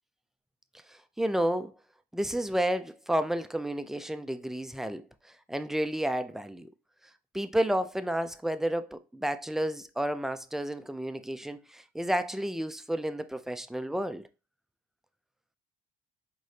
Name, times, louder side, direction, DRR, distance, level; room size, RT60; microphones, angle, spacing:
voice 1, 0.9-1.7 2.1-5.0 5.5-6.7 7.3-14.2, right 1 dB, ahead, 0.4 m, -31 dB
5.0 x 3.8 x 2.7 m
cardioid pair, 110°, 17 cm